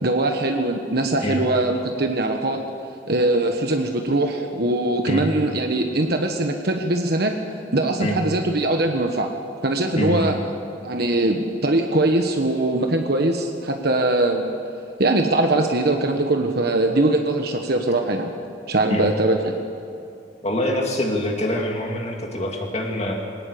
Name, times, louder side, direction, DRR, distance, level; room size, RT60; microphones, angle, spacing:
voice 1, 0.0-2.6 3.1-7.3 7.7-9.3 9.6-10.4 10.8-14.5 15.0-18.3 18.7-19.6, right 2 dB, 55° right, 4 dB, 1.4 m, -21 dB
voice 2, 10.0-10.3 18.9-19.1 20.4-23.1, left 1 dB, 35° left, 1 dB, 2.2 m, -25 dB
21.5 x 18.5 x 8.5 m, 2.6 s
head